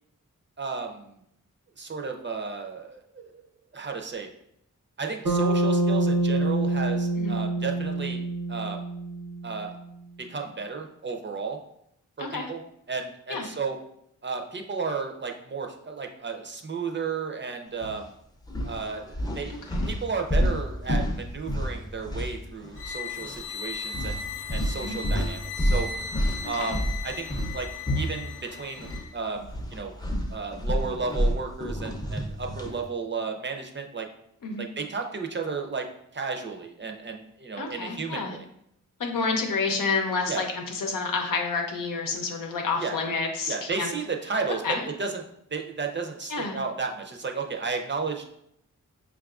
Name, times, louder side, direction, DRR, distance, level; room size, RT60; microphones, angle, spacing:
voice 1, 0.6-1.2 1.8-3.4 3.7-4.3 5.0-8.2 8.5-8.9 9.4-9.8 10.2-11.6 12.2-12.6 12.9-13.8 14.2-18.1 18.6-19.6 19.9-25.9 26.4-27.3 27.5-27.7 27.9-29.9 30.3-34.1 34.6-35.9 36.1-38.5 40.3-40.5 42.8-43.0 43.5-45.2 45.5-48.2, right 4 dB, 35° right, 3 dB, 0.5 m, -33 dB
Bass guitar, 5.2-9.6, right 2 dB, 80° right, 0.8 m, -26 dB
sound 1, 17.8-18.0 18.4-22.9 23.2-23.4 23.9-29.0 29.4-32.8, equal, 10° left, 0.5 m, -29 dB
sound 2, 22.7-29.1, left 5 dB, 40° left, 0.8 m, -37 dB
voice 2, 37.6-38.4 39.0-43.9 44.6-44.8 46.3-46.6, left 4 dB, 90° left, 2 dB, 0.7 m, -29 dB
5.5 x 2.3 x 2.4 m, 0.74 s
wide cardioid pair, 65°, 32 cm